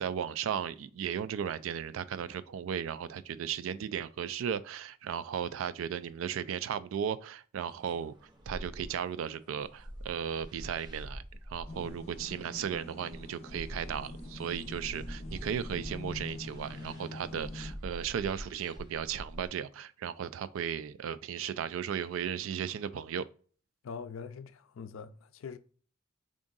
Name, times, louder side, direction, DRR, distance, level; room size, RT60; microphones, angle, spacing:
voice 1, 0.0-8.1 8.5-23.3, right 8 dB, 75° right, 0.3 m, -36 dB
sound 1, 7.7-19.5, equal, 20° right, 0.6 m, -46 dB
sound 2, 11.7-17.7, left 2 dB, 30° left, 0.6 m, -45 dB
voice 2, 23.8-25.6, left 6 dB, 80° left, 0.4 m, -43 dB
3.6 x 2.5 x 3.9 m
head